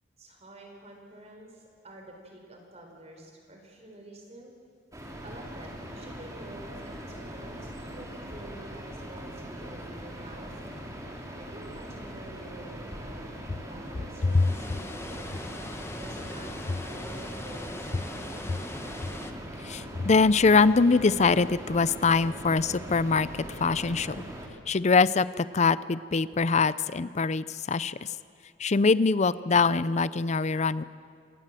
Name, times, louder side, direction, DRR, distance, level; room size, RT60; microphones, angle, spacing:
voice 1, 0.2-4.5 5.2-13.3 13.6-14.6 14.9-15.5 15.9-18.7, right 1 dB, 40° right, 2 dB, 4.7 m, -48 dB
sound 1, 4.9-24.5, equal, 20° right, 2.8 m, -41 dB
Water, 14.2-19.3, left 1 dB, 15° left, 1.2 m, -40 dB
voice 2, 19.6-23.3 23.6-24.3 24.7-28.0 28.6-30.8, left 4 dB, 40° left, 17 dB, 0.5 m, -23 dB
27.5 x 16.5 x 7.6 m, 2.4 s
head